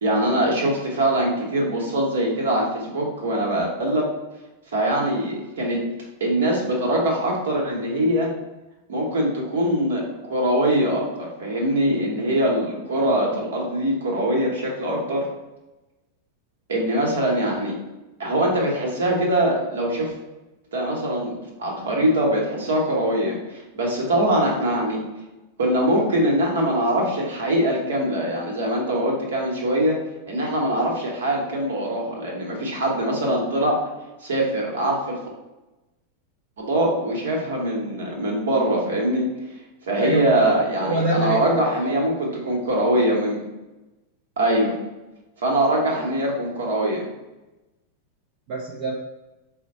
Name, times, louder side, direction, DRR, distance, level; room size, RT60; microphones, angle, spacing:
voice 1, 0.0-4.1 4.7-5.8 6.2-8.3 8.9-15.3 16.7-17.7 18.2-20.1 20.7-25.0 25.6-30.0 30.3-33.8 34.2-35.2 36.6-39.3 39.9-43.4 44.4-44.7 45.4-47.1, right 1 dB, 65° right, -1 dB, 1.1 m, -23 dB
voice 2, 40.0-42.5 48.5-48.9, right 2 dB, 45° right, -4 dB, 0.6 m, -26 dB
4.9 x 2.2 x 4.0 m, 1.0 s
figure-of-eight pair, 90°, 0 cm